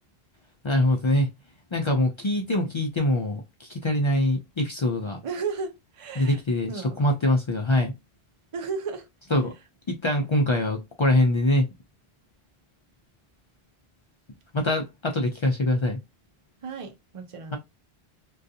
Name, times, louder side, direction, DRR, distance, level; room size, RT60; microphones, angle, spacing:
voice 1, 0.6-1.3 1.7-5.2 6.2-6.7 7.0-7.9 9.3-9.5 9.9-11.7 14.5-16.0, left 1 dB, 50° left, 0.3 m, -23 dB
voice 2, 5.2-6.4 6.7-7.0 8.5-9.1 16.6-17.6, right 5 dB, 40° right, 0.5 m, -34 dB
2.4 x 2.3 x 2.6 m
omnidirectional pair, 1.1 m